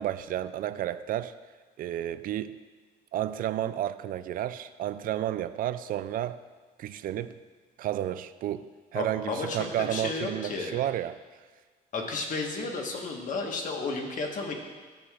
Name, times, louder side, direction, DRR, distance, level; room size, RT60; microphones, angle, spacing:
voice 1, 0.0-1.3 1.8-2.6 3.1-6.4 6.8-7.4 7.8-11.2, right 12 dB, 55° right, 13 dB, 0.4 m, -31 dB
voice 2, 8.9-10.8 11.9-14.6, left 3 dB, 50° left, 2 dB, 1.4 m, -33 dB
14.0 x 6.5 x 2.4 m, 1.4 s
cardioid pair, 110°, 17 cm